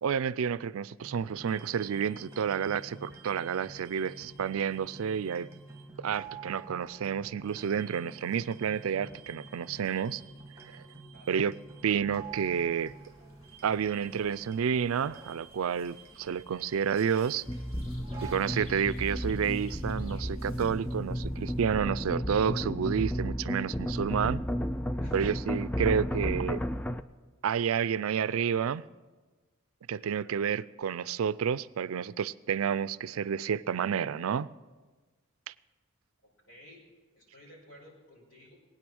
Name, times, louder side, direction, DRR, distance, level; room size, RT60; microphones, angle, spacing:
voice 1, 0.0-5.5 6.0-10.2 10.6-10.8 11.3-11.5 11.8-12.9 13.6-17.4 18.2-24.4 25.1-26.6 27.4-28.8 29.9-34.5 35.5-35.6, right 7 dB, 85° right, 0.4 m, -30 dB
sound 1, 1.0-18.3, right 4 dB, 15° right, 1.7 m, -49 dB
voice 2, 11.1-11.4 18.6-19.0 25.0-25.5 36.5-36.9 37.1-38.6, left 1 dB, 65° left, 5.3 m, -54 dB
sound 2, 12.3-21.6, left 1 dB, 90° left, 2.9 m, -57 dB
sound 3, 17.5-27.0, equal, 5° left, 0.4 m, -33 dB
20.0 x 9.3 x 6.2 m
head